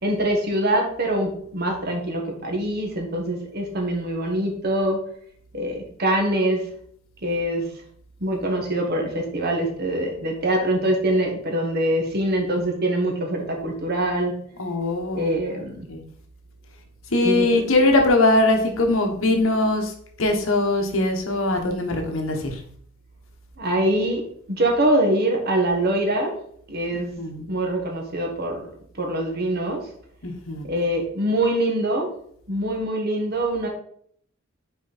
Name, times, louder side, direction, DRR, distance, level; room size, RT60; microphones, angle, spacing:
voice 1, 0.0-5.0 5.5-6.7 7.2-7.7 8.2-14.3 15.1-15.9 17.2-17.6 21.9-22.0 23.6-24.2 24.5-26.3 26.7-28.7 29.0-29.8 30.7-32.1 32.5-33.7, right 1 dB, 50° right, 1 dB, 1.7 m, -24 dB
voice 2, 14.6-16.1 17.1-19.9 20.2-22.6 26.9-27.5 30.2-30.7, left 2 dB, 80° left, 3 dB, 1.3 m, -22 dB
6.1 x 4.5 x 4.2 m, 0.62 s
head